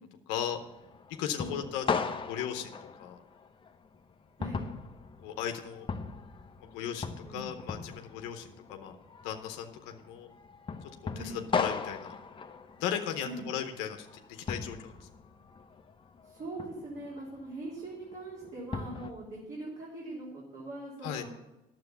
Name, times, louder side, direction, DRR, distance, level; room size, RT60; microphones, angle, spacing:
voice 1, 0.3-0.6 1.2-1.8 2.3-3.2 5.2-5.9 6.6-9.0 9.2-10.3 11.2-12.1 12.8-15.1 21.0-21.3, left 9 dB, 90° left, 5 dB, 0.9 m, -36 dB
sound 1, 0.5-19.1, left 5 dB, 30° left, 0.8 m, -39 dB
voice 2, 16.3-21.3, right 2 dB, 50° right, -5 dB, 3.2 m, -42 dB
9.6 x 7.5 x 6.8 m, 0.98 s
supercardioid pair, 80°, 17 cm